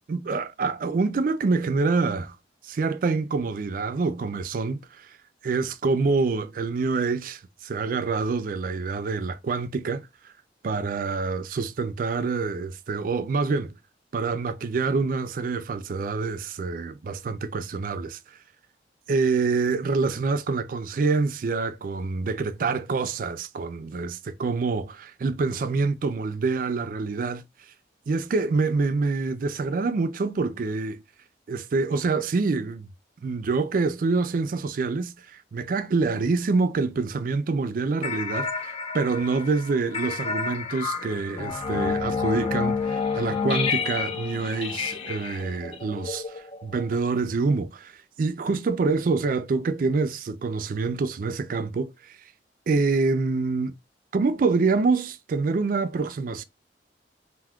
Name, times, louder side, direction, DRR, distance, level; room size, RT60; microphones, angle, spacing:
voice 1, 0.1-2.4 2.6-5.2 5.4-10.3 10.6-13.7 14.1-18.2 19.1-27.4 28.1-31.0 31.5-32.9 33.2-52.2 52.7-53.7 54.1-56.4, right 4 dB, 50° right, 0.3 m, -26 dB
sound 1, 38.0-46.9, left 5 dB, 30° left, 0.4 m, -30 dB
3.5 x 2.5 x 2.3 m
head